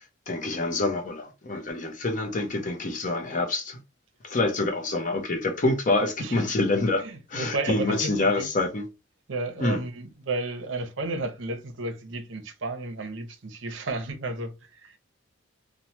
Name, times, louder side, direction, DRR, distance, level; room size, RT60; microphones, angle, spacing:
voice 1, 0.3-3.8 4.2-8.8 9.6-9.8, left 2 dB, 40° left, 0.6 m, -26 dB
voice 2, 7.0-8.5 9.3-15.0, right 2 dB, 65° right, 0.6 m, -33 dB
3.0 x 2.1 x 2.7 m
head